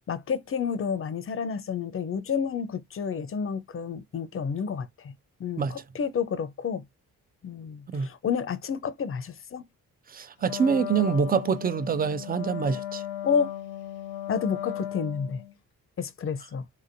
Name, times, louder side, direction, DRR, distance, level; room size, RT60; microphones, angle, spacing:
voice 1, 0.1-5.1 5.4-6.8 7.4-9.6 13.2-13.5 14.3-15.4 16.0-16.6, left 6 dB, 35° left, 0.5 m, -30 dB
voice 2, 10.1-13.0, right 6 dB, 25° right, 0.4 m, -25 dB
Wind instrument woodwind instrument, 10.4-15.5, left 11 dB, 90° left, 0.7 m, -36 dB
3.9 x 2.7 x 2.6 m
supercardioid pair, 60°, 36 cm